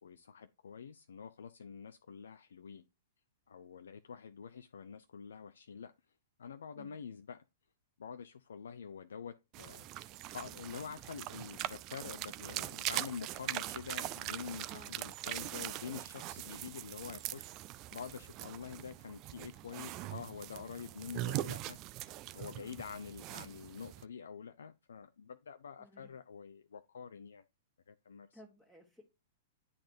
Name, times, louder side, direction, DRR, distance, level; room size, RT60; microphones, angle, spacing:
voice 1, 0.0-2.9 3.5-5.9 6.4-7.4 8.0-9.9 10.3-17.5 17.9-21.8 22.3-27.4 27.9-28.4, left 6 dB, 65° left, 0.5 m, -47 dB
sound 1, 9.5-24.0, right 15 dB, 35° right, 0.4 m, -42 dB
voice 2, 22.6-22.9 25.8-26.1 28.3-29.0, equal, ahead, 1.6 m, -58 dB
9.9 x 4.1 x 2.7 m
figure-of-eight pair, 105°, 0 cm